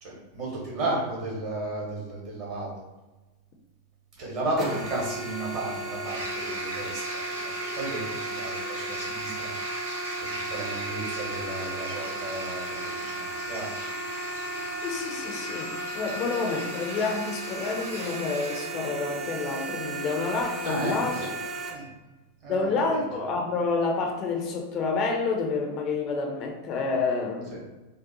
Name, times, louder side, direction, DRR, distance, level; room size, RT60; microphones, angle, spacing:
voice 1, 0.0-2.8 4.2-9.5 10.5-13.7 20.6-21.3 21.7-21.9 22.4-23.2 27.4-27.6, right 2 dB, 45° right, -3 dB, 0.9 m, -34 dB
sound 1, 4.6-21.7, right 2 dB, 25° right, 0.5 m, -35 dB
sound 2, 6.0-18.7, right 1 dB, 75° right, 0.6 m, -38 dB
voice 2, 14.8-21.2 22.5-27.6, left 4 dB, 35° left, 2 dB, 0.4 m, -29 dB
2.6 x 2.0 x 2.6 m, 1.1 s
figure-of-eight pair, 90°, 0 cm